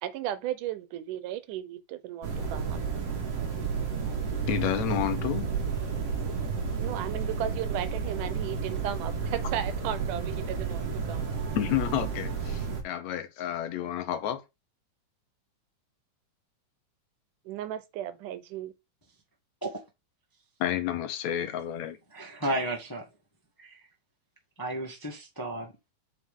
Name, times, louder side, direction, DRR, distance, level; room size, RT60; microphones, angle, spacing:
voice 1, 0.0-2.8 6.8-11.4 17.5-18.7, right 11 dB, 90° right, 2.4 m, -35 dB
sound 1, 2.2-12.8, right 5 dB, 55° right, 2.8 m, -31 dB
voice 2, 4.5-5.5 11.6-14.4 20.6-22.0, left 11 dB, 70° left, 1.9 m, -30 dB
voice 3, 22.1-23.0 23.6-23.8 24.6-25.9, right 1 dB, 15° left, 0.7 m, -33 dB
8.2 x 4.7 x 3.7 m
omnidirectional pair, 3.5 m